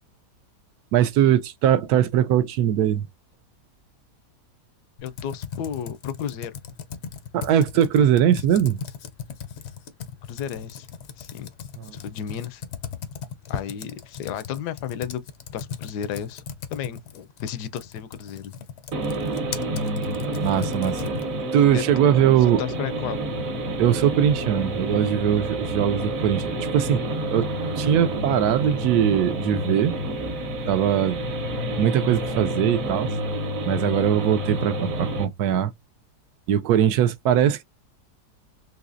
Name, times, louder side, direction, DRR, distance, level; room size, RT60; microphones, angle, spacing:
voice 1, 0.9-3.1 7.3-8.8 11.8-11.9 20.4-21.0 21.5-22.6 23.8-27.0 27.3-27.5 27.8-29.9 30.7-31.3 31.8-33.1 33.6-35.7 36.5-37.6, right 10 dB, 75° right, 1.1 m, -21 dB
voice 2, 5.0-6.5 8.0-8.5 10.3-10.9 11.2-11.5 11.9-12.6 13.5-15.2 15.5-16.4 16.7-18.5 21.7-21.8 22.6-23.2, left 9 dB, 80° left, 1.1 m, -33 dB
Computer keyboard, 5.0-21.4, left 8 dB, 65° left, 0.6 m, -38 dB
sound 1, 18.9-35.3, right 1 dB, 60° right, 1.3 m, -29 dB
4.0 x 2.8 x 2.5 m
omnidirectional pair, 1.7 m